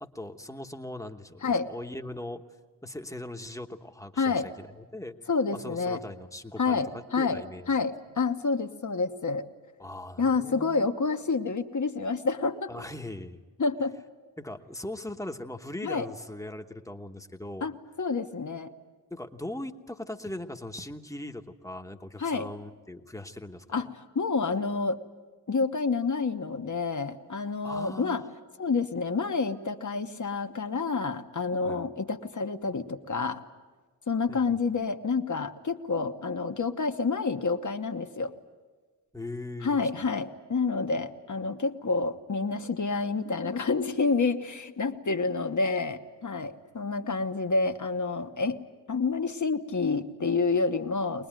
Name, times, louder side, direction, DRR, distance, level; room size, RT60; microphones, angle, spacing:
voice 1, 0.0-2.4 2.8-5.1 5.5-6.8 7.2-7.7 9.8-10.9 12.7-13.4 14.4-17.7 19.1-23.9 27.6-28.3 31.6-31.9 34.3-34.6 39.1-39.8, left 1 dB, 5° left, 5 dB, 1.1 m, -40 dB
voice 2, 4.2-4.5 5.3-6.0 6.6-7.4 7.7-9.4 10.2-12.7 13.6-14.0 15.8-16.1 17.6-18.7 22.2-22.5 23.7-23.9 24.1-25.0 25.5-28.2 28.6-33.4 34.1-38.3 39.6-48.6 48.9-51.3, left 4 dB, 45° left, 6 dB, 1.2 m, -28 dB
23.5 x 20.5 x 9.0 m, 1.4 s
wide cardioid pair, 115°, 43 cm